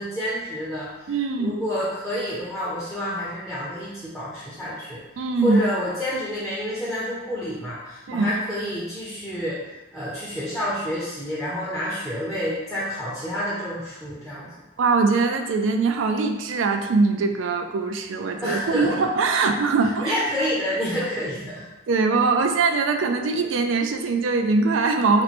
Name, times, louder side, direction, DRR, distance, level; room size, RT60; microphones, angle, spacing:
voice 1, 0.0-5.0 5.4-9.6 9.9-14.5 18.4-19.1 19.3-19.5 19.8-21.6, equal, ahead, -9 dB, 0.5 m, -29 dB
voice 2, 1.1-1.6 5.2-5.6 8.1-8.3 14.8-20.2 21.9-25.2, right 4 dB, 75° right, 5 dB, 0.3 m, -22 dB
3.0 x 2.1 x 4.1 m, 1.1 s
head